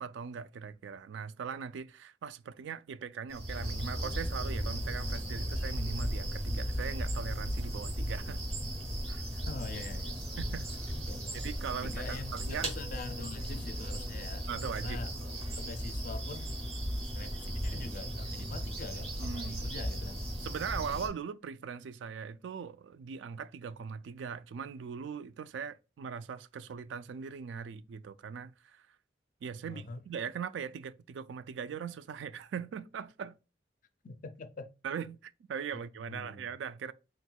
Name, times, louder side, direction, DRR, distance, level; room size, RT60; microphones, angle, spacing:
voice 1, 0.0-8.4 9.1-9.4 10.4-10.7 11.4-12.7 14.5-15.3 19.2-19.7 20.4-28.9 29.4-33.4 34.8-36.9, right 7 dB, 85° right, 0.3 m, -40 dB
sound 1, 3.3-21.1, equal, 35° right, 1.3 m, -36 dB
voice 2, 9.4-10.3 11.1-11.3 11.8-14.5 14.8-15.1 15.5-16.5 17.0-20.2 29.6-30.1 34.0-34.7 36.1-36.5, left 3 dB, 45° left, 0.4 m, -44 dB
4.4 x 3.8 x 2.2 m
head